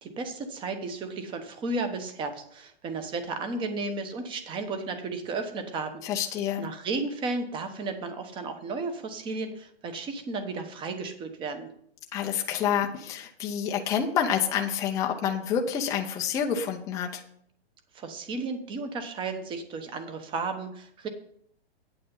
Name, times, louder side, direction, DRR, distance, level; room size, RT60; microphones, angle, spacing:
voice 1, 0.0-6.0 6.6-11.7 17.9-21.1, right 3 dB, 15° right, 8 dB, 1.0 m, -33 dB
voice 2, 6.0-6.7 12.1-17.2, left 8 dB, 10° left, 2 dB, 0.5 m, -28 dB
8.6 x 8.5 x 5.4 m, 0.67 s
hypercardioid pair, 155°, 31 cm